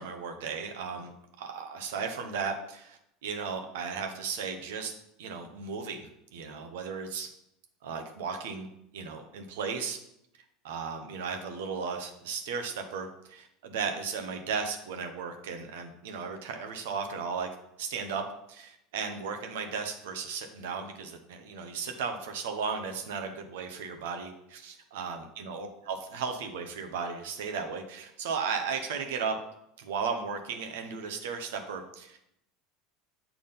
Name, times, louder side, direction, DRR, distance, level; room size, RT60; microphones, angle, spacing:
voice 1, 0.0-4.9 5.2-7.3 7.8-8.7 8.9-10.0 10.6-17.5 17.8-18.2 18.5-29.3 29.8-32.2, right 5 dB, 75° right, 5 dB, 0.9 m, -35 dB
6.9 x 3.7 x 5.5 m, 0.79 s
hypercardioid pair, 85°, 0 cm